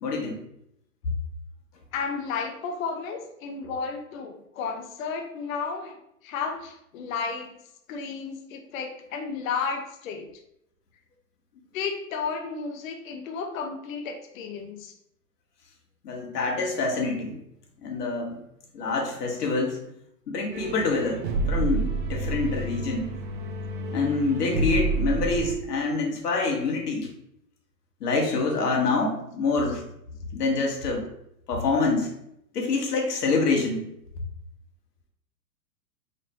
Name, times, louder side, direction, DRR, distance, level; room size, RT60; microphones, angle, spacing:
voice 1, 0.0-0.4 16.0-17.4 17.8-18.4 18.7-19.8 20.3-23.1 23.9-27.1 28.0-29.8 30.3-31.1 31.5-32.1 32.5-33.8, left 3 dB, 75° left, 0 dB, 1.2 m, -26 dB
voice 2, 1.9-6.0 6.2-7.6 7.9-10.3 11.7-14.9, left 5 dB, 55° left, 4 dB, 0.7 m, -33 dB
sound 1, 20.5-25.5, right 3 dB, 35° right, 0.4 m, -29 dB
3.3 x 2.5 x 4.2 m, 0.78 s
hypercardioid pair, 130°, 48 cm